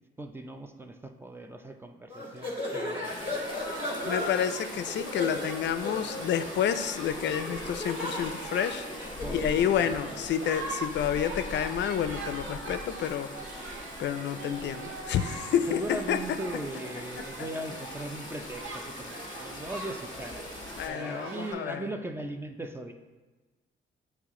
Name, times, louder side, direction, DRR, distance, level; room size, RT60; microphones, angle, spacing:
voice 1, 0.2-3.5 9.2-10.2 15.7-20.5 20.9-22.9, right 1 dB, 10° right, 5 dB, 0.6 m, -39 dB
sound 1, 2.1-9.6, left 1 dB, 30° right, 1.6 m, -36 dB
sound 2, 3.0-20.9, left 2 dB, 20° left, 1.4 m, -43 dB
Shout / Human group actions, 3.9-21.5, right 3 dB, 80° right, 1.0 m, -42 dB
voice 2, 4.0-13.5 14.0-16.4 17.2-17.5 20.8-21.9, left 9 dB, 65° left, 11 dB, 0.4 m, -29 dB
8.6 x 3.2 x 3.7 m, 1.3 s
cardioid pair, 90°, 20 cm